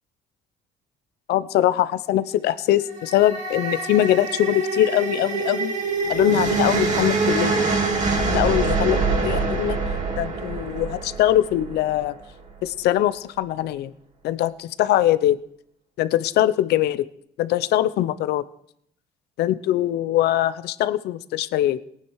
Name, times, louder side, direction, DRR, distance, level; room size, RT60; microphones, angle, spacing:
voice 1, 1.3-5.7 6.1-7.6 7.9-9.8 10.2-12.1 12.6-13.9 14.2-15.4 16.0-17.0 17.4-18.4 19.4-21.8, left 13 dB, 75° left, 15 dB, 0.7 m, -22 dB
sound 1, 2.7-12.0, right 3 dB, 45° right, 2.8 m, -25 dB
18.5 x 9.6 x 4.8 m, 0.70 s
cardioid pair, 110°, 17 cm